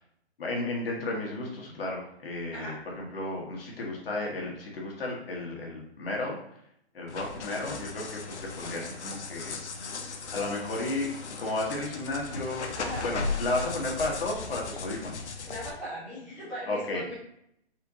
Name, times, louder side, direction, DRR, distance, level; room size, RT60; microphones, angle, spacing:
voice 1, 0.4-6.4 6.9-9.6 10.3-11.1 11.4-12.7 13.0-15.2 16.6-17.0, left 2 dB, 60° left, -1 dB, 1.4 m, -33 dB
sound 1, 7.1-15.7, left 4 dB, 85° left, 0.7 m, -37 dB
voice 2, 15.5-17.1, equal, 5° right, -14 dB, 0.6 m, -38 dB
4.5 x 2.5 x 3.6 m, 0.75 s
hypercardioid pair, 155°, 33 cm